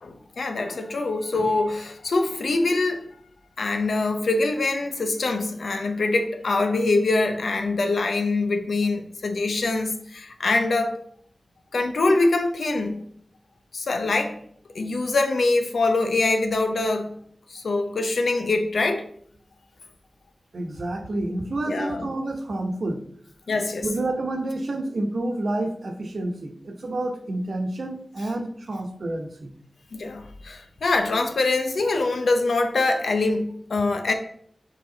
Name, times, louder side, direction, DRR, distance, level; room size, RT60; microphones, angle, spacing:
voice 1, 0.0-3.0 3.6-11.0 11.7-13.1 13.7-14.4 14.7-17.2 17.5-19.1 21.7-22.1 23.5-23.9 29.9-34.1, left 3 dB, 85° left, 5 dB, 0.8 m, -24 dB
voice 2, 20.5-23.0 23.8-29.5, right 2 dB, 70° right, 4 dB, 1.0 m, -29 dB
7.1 x 4.6 x 4.0 m, 0.65 s
wide cardioid pair, 70°, 0 cm